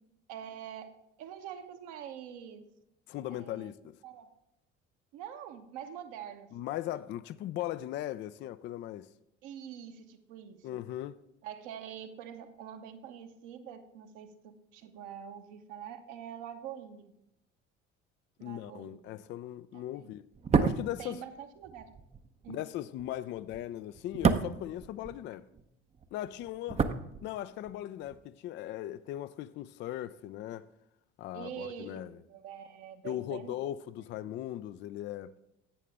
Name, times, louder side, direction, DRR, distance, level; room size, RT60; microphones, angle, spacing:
voice 1, 0.3-0.9 1.2-2.6 3.3-3.7 4.0-4.3 5.1-6.5 9.4-10.8 11.4-17.1 18.4-19.2 19.7-20.1 21.0-21.9 22.4-22.6 26.8-26.9 31.3-33.7, right 9 dB, 55° right, 1.1 m, -45 dB
voice 2, 3.1-4.0 6.5-9.1 10.6-11.2 18.4-20.2 20.6-21.2 22.5-25.5 26.1-26.8 27.2-30.7 31.2-32.2 33.0-35.3, left 13 dB, 35° left, 0.4 m, -38 dB
sound 1, 20.3-25.7 25.9-27.8 28.0-28.2, right 5 dB, 20° right, 0.6 m, -31 dB
11.5 x 8.4 x 3.4 m
figure-of-eight pair, 60°, 35 cm